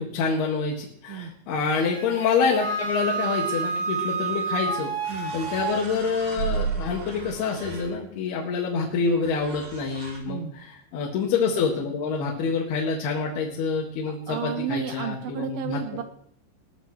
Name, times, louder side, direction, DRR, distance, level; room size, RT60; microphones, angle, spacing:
voice 1, 0.0-4.9 5.3-15.8, left 5 dB, 70° left, -2 dB, 3.6 m, -27 dB
Wind instrument woodwind instrument, 1.7-5.8, right 4 dB, 25° right, 3.1 m, -29 dB
sound 1, 5.0-8.3 9.3-10.2, right 6 dB, 65° right, 4.9 m, -34 dB
voice 2, 14.1-16.0, right 10 dB, 80° right, 8 dB, 2.2 m, -32 dB
20.5 x 13.0 x 3.1 m, 0.66 s
omnidirectional pair, 4.9 m